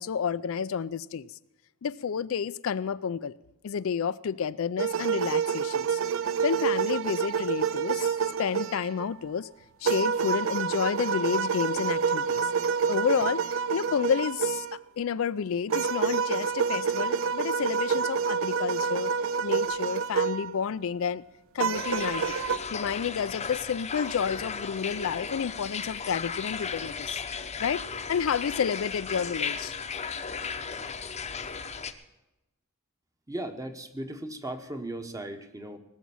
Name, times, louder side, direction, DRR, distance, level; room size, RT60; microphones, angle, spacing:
voice 1, 0.0-1.4 1.8-3.4 3.6-6.0 6.4-9.5 9.8-12.5 12.9-19.1 19.4-21.2 21.5-22.2 22.7-27.2 27.6-29.8, left 7 dB, 65° left, 0.4 m, -30 dB
sound 1, 4.8-9.1 9.9-14.8 15.7-20.5 21.6-22.6, right 6 dB, 65° right, 0.5 m, -28 dB
sound 2, 21.7-31.9, left 6 dB, 30° left, 0.8 m, -35 dB
voice 2, 33.3-35.8, right 1 dB, 15° right, 1.1 m, -37 dB
18.5 x 7.3 x 7.1 m
head